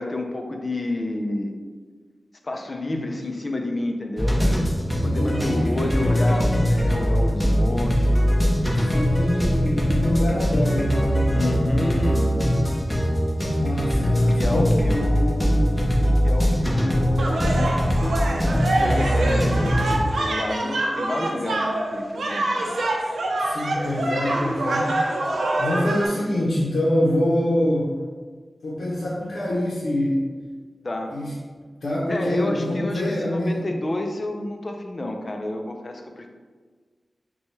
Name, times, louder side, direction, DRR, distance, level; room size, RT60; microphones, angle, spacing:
voice 1, 0.0-1.5 2.4-4.4 5.0-8.2 11.3-12.3 14.4-17.8 18.6-21.7 21.9-22.9 30.8-31.1 32.1-36.3, left 1 dB, 40° left, 4 dB, 0.5 m, -30 dB
sound 1, 4.2-20.0, equal, ahead, 0.9 m, -21 dB
voice 2, 5.0-5.8 8.9-11.3 13.6-15.0 18.8-19.0 23.4-24.9 25.6-27.9 28.6-30.2 31.1-31.3 31.8-33.6, left 1 dB, 90° left, -7 dB, 0.7 m, -25 dB
sound 2, 17.2-26.1, right 2 dB, 90° right, 0.6 m, -25 dB
6.0 x 2.3 x 3.2 m, 1.5 s
wide cardioid pair, 90°, 0 cm